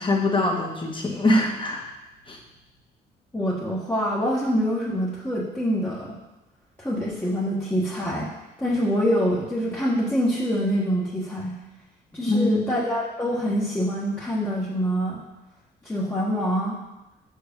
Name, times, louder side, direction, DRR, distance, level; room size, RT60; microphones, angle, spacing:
voice 1, 0.0-1.8 2.3-2.4 12.2-12.7, left 2 dB, 25° left, 0 dB, 1.6 m, -23 dB
voice 2, 3.3-6.1 6.8-8.3 8.6-11.5 12.1-15.2 15.8-16.8, equal, 10° left, -7 dB, 1.5 m, -25 dB
6.7 x 4.7 x 5.3 m, 0.98 s
cardioid pair, 90°, 19 cm